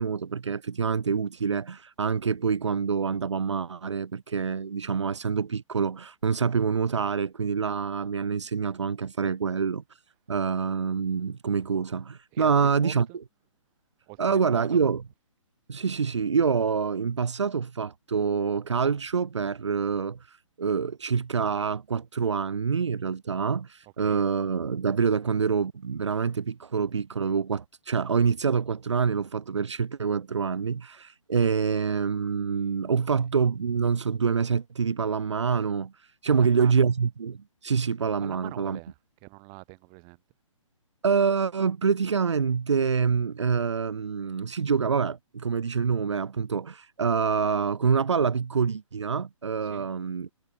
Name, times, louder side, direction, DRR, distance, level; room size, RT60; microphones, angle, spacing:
voice 1, 0.0-9.8 10.3-13.1 14.2-15.0 15.7-38.8 41.0-50.3, right 6 dB, 60° right, 1.6 m, -26 dB
voice 2, 12.3-13.2 14.1-14.8 24.0-24.3 36.3-36.9 38.2-40.2 49.6-49.9, right 40 dB or more, 25° right, 6.3 m, -45 dB
figure-of-eight pair, 130°, 17 cm